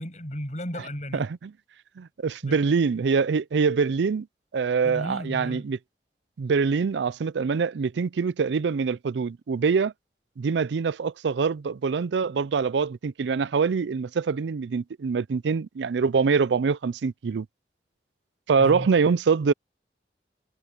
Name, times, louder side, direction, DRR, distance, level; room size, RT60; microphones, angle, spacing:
voice 1, 0.0-1.3 2.4-2.6 4.8-5.6 18.6-18.9, equal, 40° left, 7.4 m, -34 dB
voice 2, 1.1-1.5 2.0-4.3 4.5-5.8 6.4-9.9 10.4-17.5 18.5-19.5, right 5 dB, 80° right, 0.4 m, -24 dB
head